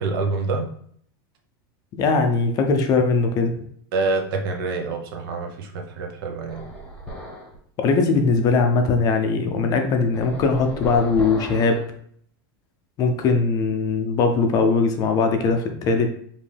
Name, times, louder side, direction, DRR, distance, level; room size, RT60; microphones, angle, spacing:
voice 1, 0.0-0.7 3.9-6.6, right 3 dB, 65° right, 3 dB, 0.9 m, -26 dB
voice 2, 1.9-3.5 7.8-11.8 13.0-16.2, left 4 dB, 30° left, 5 dB, 0.6 m, -20 dB
sound 1, 6.5-7.6 10.1-11.9, right 1 dB, 5° left, 1.0 m, -35 dB
5.2 x 2.7 x 3.3 m, 0.62 s
supercardioid pair, 155°, 13 cm